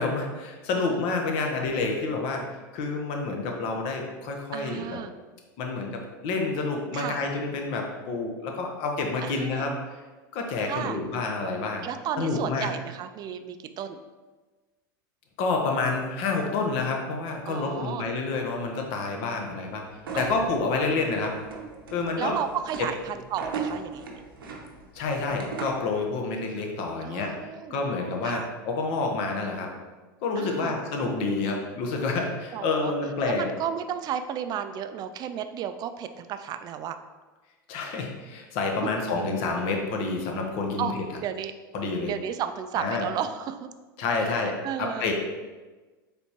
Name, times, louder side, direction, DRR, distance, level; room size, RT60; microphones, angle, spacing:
voice 1, 0.0-5.0 5.6-9.7 10.3-11.9 12.2-12.7 15.4-19.8 20.1-21.4 21.9-22.4 24.9-27.4 27.7-29.7 30.2-33.5 37.7-41.0 41.7-42.1 42.8-43.1 44.0-45.1, left 3 dB, 55° left, 2 dB, 0.8 m, -28 dB
voice 2, 4.5-5.1 6.9-7.2 9.2-9.7 10.6-11.0 11.8-14.0 17.5-18.0 20.1-20.6 22.2-24.1 27.0-27.8 28.2-28.5 30.4-30.8 32.5-32.9 33.3-37.0 38.8-38.9 40.8-40.9 41.2-41.5 42.0-43.7 44.2-45.0, right 9 dB, 35° right, 10 dB, 0.3 m, -33 dB
sound 1, 20.0-25.9, right 4 dB, 85° right, 0.7 m, -37 dB
4.2 x 3.5 x 2.8 m, 1.3 s
hypercardioid pair, 95°, 11 cm